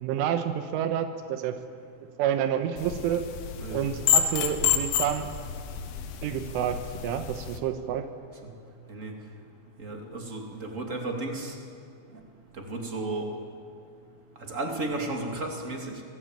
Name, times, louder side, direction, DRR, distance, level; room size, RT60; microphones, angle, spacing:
voice 1, 0.0-1.6 2.2-3.3 3.7-5.3 6.2-8.1, right 9 dB, 85° right, 8 dB, 3.6 m, -29 dB
sound 1, 2.8-7.6, left 9 dB, 85° left, 3.9 m, -29 dB
voice 2, 3.6-4.0 8.9-9.1 9.8-11.6 12.7-13.3 14.4-16.0, right 2 dB, 25° right, 2 dB, 1.7 m, -33 dB
27.5 x 18.0 x 9.0 m, 2.4 s
omnidirectional pair, 5.6 m